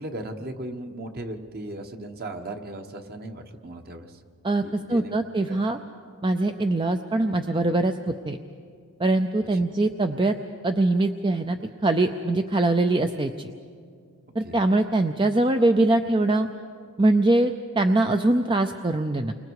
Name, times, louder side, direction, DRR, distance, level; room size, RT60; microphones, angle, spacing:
voice 1, 0.0-4.2 4.6-5.1 5.5-5.6 9.5-9.6 14.4-14.5, right 1 dB, 45° right, 5 dB, 1.4 m, -37 dB
voice 2, 4.4-5.8 6.2-8.4 9.0-10.3 10.6-13.5 14.4-16.5 17.0-19.3, right 2 dB, 20° right, 7 dB, 0.5 m, -23 dB
29.5 x 24.5 x 4.8 m, 2.2 s
head